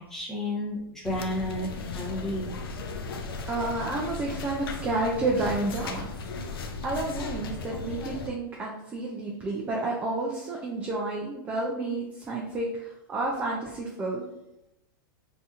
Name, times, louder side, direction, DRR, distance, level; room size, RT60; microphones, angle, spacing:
voice 1, 0.0-2.5, left 1 dB, 5° left, -5 dB, 0.8 m, -32 dB
sound 1, 1.0-8.3, left 4 dB, 80° left, 0.6 m, -36 dB
voice 2, 3.5-6.1 6.5-14.3, right 2 dB, 15° right, -2 dB, 0.4 m, -30 dB
4.1 x 2.7 x 2.4 m, 0.88 s
supercardioid pair, 155°, 12 cm